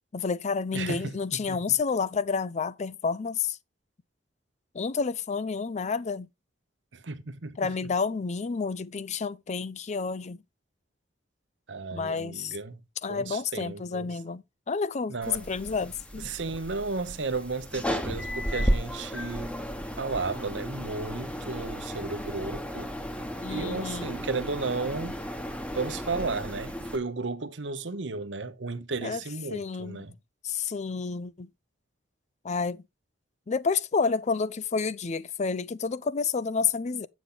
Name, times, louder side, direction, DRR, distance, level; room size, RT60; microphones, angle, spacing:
voice 1, 0.1-3.6 4.7-6.3 7.6-10.4 11.9-12.5 13.0-16.3 23.4-24.1 29.0-29.2 29.5-30.0 30.4-31.5 32.4-32.8 33.5-37.1, left 5 dB, 40° left, 0.5 m, -30 dB
voice 2, 0.7-1.6 6.9-7.7 11.7-12.8 13.1-14.2 15.1-15.5 16.2-19.5 20.0-22.9 23.5-25.2 25.7-30.2, right 3 dB, 70° right, 1.0 m, -34 dB
sound 1, 15.2-27.0, equal, 5° left, 1.1 m, -34 dB
8.5 x 7.1 x 3.9 m
head